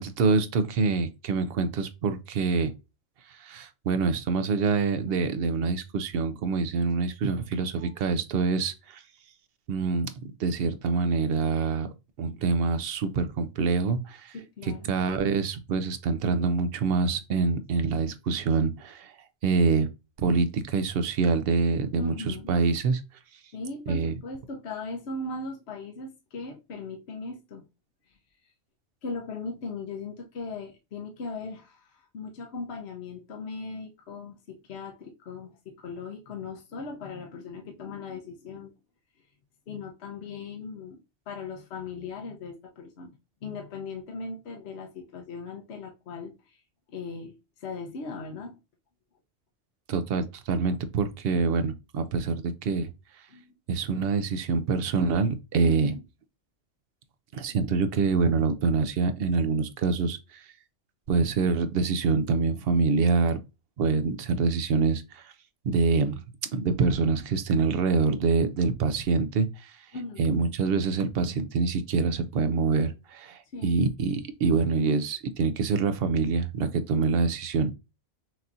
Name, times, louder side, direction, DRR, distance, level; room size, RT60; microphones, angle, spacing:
voice 1, 0.0-2.7 3.3-9.0 9.7-10.1 10.4-11.9 12.2-14.3 14.8-19.1 19.4-19.9 20.2-23.0 23.9-24.1 49.9-52.9 53.7-55.9 57.3-60.4 61.1-63.4 63.8-65.3 65.6-66.2 66.5-69.7 70.2-77.7, right 4 dB, 60° right, 0.8 m, -25 dB
voice 2, 14.3-14.9 22.0-22.5 23.5-27.6 29.0-38.7 39.7-41.0 41.3-43.1 43.4-46.6 46.9-48.6 53.3-53.5 55.6-56.0 69.9-70.3 73.5-73.7, left 3 dB, 65° left, 1.0 m, -38 dB
6.0 x 2.8 x 2.5 m
omnidirectional pair, 1.2 m